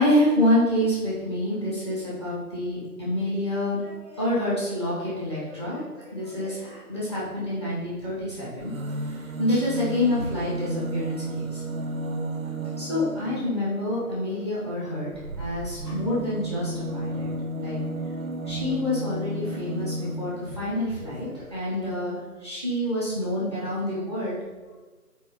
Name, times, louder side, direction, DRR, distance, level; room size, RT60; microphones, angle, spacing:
voice 1, 0.0-8.7 9.0-11.6 12.4-15.1 15.4-17.3 17.6-17.8 18.5-24.4, left 1 dB, 15° left, -8 dB, 1.4 m, -27 dB
sound 1, 8.6-13.5 15.1-20.6 21.5-21.6 21.8-21.9, right 1 dB, 60° right, 0.5 m, -32 dB
6.0 x 4.5 x 3.8 m, 1.3 s
figure-of-eight pair, 165°, 47 cm